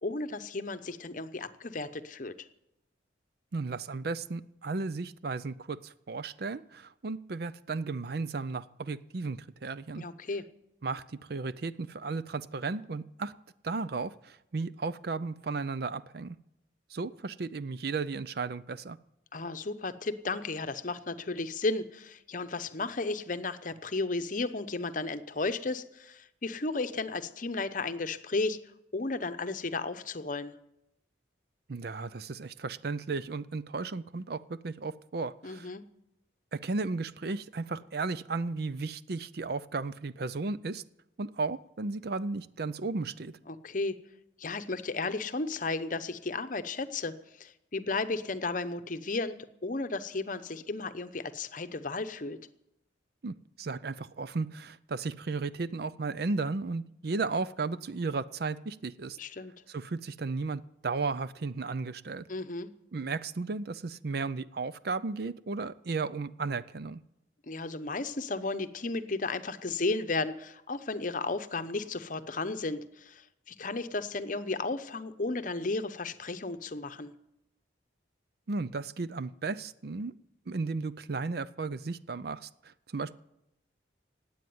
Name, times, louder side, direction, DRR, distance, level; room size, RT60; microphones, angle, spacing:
voice 1, 0.0-2.5 10.0-10.4 19.3-28.6 28.9-30.5 35.4-35.9 43.5-44.0 44.4-52.4 59.2-59.5 62.3-62.7 67.5-77.1, left 3 dB, 45° left, 11 dB, 0.8 m, -34 dB
voice 2, 3.5-10.0 10.8-11.0 11.3-13.3 13.6-16.4 16.9-19.0 31.7-35.7 36.5-40.8 41.2-43.3 53.2-59.2 59.7-62.3 62.9-67.0 78.5-80.1 80.5-83.1, right 4 dB, 55° right, 16 dB, 0.5 m, -34 dB
17.0 x 8.6 x 9.4 m, 0.85 s
head